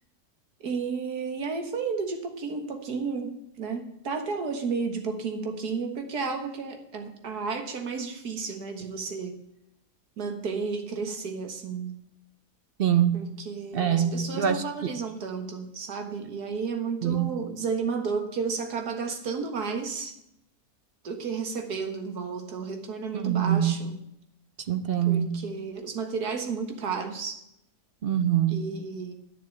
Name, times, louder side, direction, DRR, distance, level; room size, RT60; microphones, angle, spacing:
voice 1, 0.6-9.4 10.2-12.0 13.1-20.2 21.0-24.0 25.1-27.4 28.5-29.1, right 5 dB, 80° right, 5 dB, 2.1 m, -32 dB
voice 2, 12.8-13.2 13.7-14.6 17.0-17.3 23.1-23.8 24.7-25.4 28.0-28.7, right 9 dB, 50° right, 11 dB, 0.7 m, -24 dB
9.7 x 7.0 x 8.8 m, 0.80 s
omnidirectional pair, 1.7 m